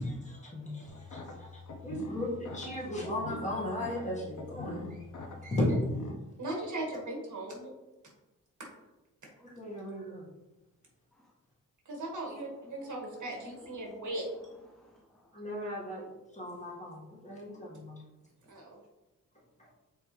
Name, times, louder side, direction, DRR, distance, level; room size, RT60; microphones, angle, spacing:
voice 1, 0.0-1.5 1.8-4.8 5.5-5.8 9.4-10.2 15.3-16.0 16.3-18.0, left 1 dB, 20° left, -5 dB, 1.8 m, -36 dB
sound 1, 0.9-6.1, left 3 dB, 65° left, 1.0 m, -44 dB
voice 2, 6.4-7.7 11.9-14.3 18.5-18.8, right 1 dB, 65° right, -1 dB, 1.9 m, -38 dB
voice 3, 11.9-15.4, left 1 dB, ahead, -1 dB, 0.5 m, -59 dB
6.9 x 4.4 x 3.2 m, 1.0 s
wide cardioid pair, 150°, 33 cm